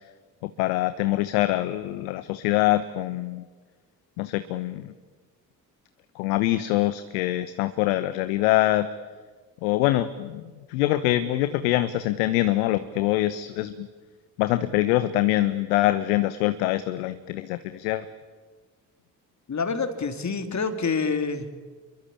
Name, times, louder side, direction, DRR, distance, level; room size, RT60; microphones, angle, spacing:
voice 1, 0.4-3.4 4.2-4.9 6.1-8.9 9.6-10.4 10.7-13.9 14.4-18.1, left 15 dB, 65° left, 12 dB, 1.2 m, -24 dB
voice 2, 19.5-21.5, left 4 dB, 35° left, 8 dB, 3.2 m, -27 dB
29.5 x 23.0 x 8.7 m, 1.4 s
figure-of-eight pair, 45°, 48 cm